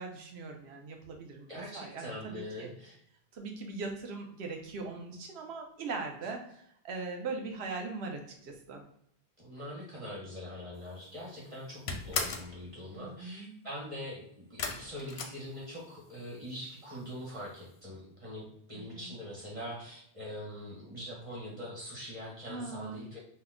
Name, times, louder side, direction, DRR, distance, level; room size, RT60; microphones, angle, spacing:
voice 1, 0.0-2.7 3.3-6.4 6.8-8.8 12.9-13.5 18.7-19.1 22.5-23.0, right 4 dB, 80° right, 2 dB, 0.9 m, -40 dB
voice 2, 1.5-3.0 9.4-23.2, equal, 30° right, -4 dB, 1.3 m, -43 dB
sound 1, 10.9-11.2 11.5-12.6 14.6-16.1 16.4-17.0 17.3-17.4 17.7-17.8, left 4 dB, 90° left, 0.8 m, -37 dB
2.8 x 2.2 x 3.5 m, 0.69 s
omnidirectional pair, 1.1 m